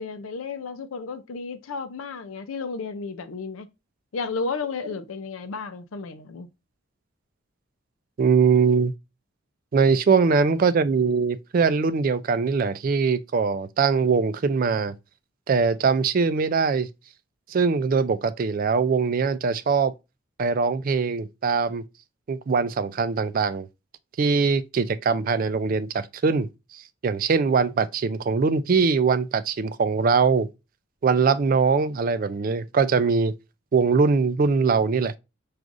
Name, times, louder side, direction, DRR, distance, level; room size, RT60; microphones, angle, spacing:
voice 1, 0.0-3.7 4.1-6.5, left 4 dB, 90° left, 0.5 m, -33 dB
voice 2, 8.2-8.9 9.7-14.9 15.5-16.9 17.5-19.9 20.4-21.8 22.3-23.7 24.2-30.5 31.0-33.3 33.7-35.1, right 5 dB, 45° right, 0.3 m, -22 dB
6.0 x 2.4 x 2.5 m
head